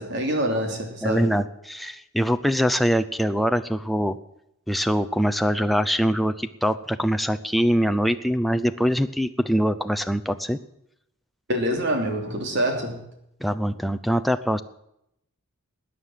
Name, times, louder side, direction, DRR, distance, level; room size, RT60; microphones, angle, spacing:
voice 1, 0.0-1.3 11.5-13.0, equal, 55° right, 3 dB, 3.2 m, -26 dB
voice 2, 1.0-4.2 4.7-10.6 13.4-14.6, equal, ahead, 9 dB, 0.5 m, -23 dB
19.5 x 9.6 x 7.5 m, 0.79 s
head